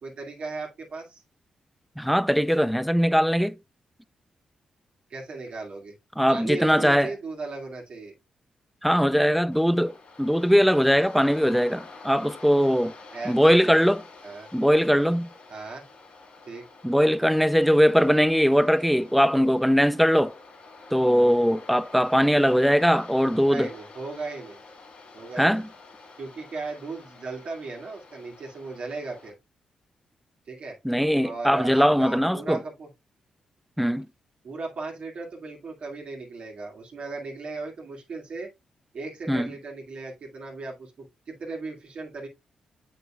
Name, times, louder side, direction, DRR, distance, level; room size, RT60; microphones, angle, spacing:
voice 1, 0.0-1.2 5.1-5.9 6.3-8.1 13.1-13.4 14.2-14.5 15.5-15.8 16.5-16.6 23.5-24.6 25.1-25.6 26.2-29.3 30.5-30.8 31.2-32.9 34.4-38.5 38.9-42.3, right 3 dB, 60° right, 2.0 m, -36 dB
voice 2, 2.0-3.6 6.2-7.1 8.8-12.9 13.3-14.0 14.5-15.3 16.8-20.3 20.9-23.7 25.4-25.7 30.8-32.6 33.8-34.1 39.3-39.5, equal, ahead, 0.5 m, -21 dB
Waves surf, 9.5-29.3, left 3 dB, 70° left, 3.1 m, -48 dB
7.1 x 5.7 x 2.3 m
supercardioid pair, 50°, 2 cm